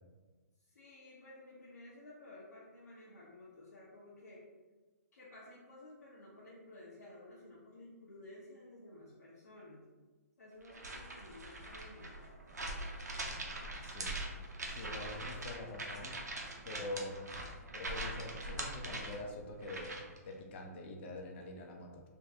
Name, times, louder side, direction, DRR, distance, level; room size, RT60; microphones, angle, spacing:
voice 1, 0.6-4.4 5.1-9.8 10.4-12.6, left 2 dB, 80° left, -8 dB, 0.8 m, -54 dB
sound 1, 10.6-20.2, right 2 dB, 90° right, 0.6 m, -42 dB
voice 2, 13.8-14.2 14.7-16.1 16.6-17.2 17.7-22.0, left 2 dB, 45° left, 1 dB, 0.6 m, -45 dB
3.4 x 2.2 x 2.7 m, 1.3 s
hypercardioid pair, 135°, 9 cm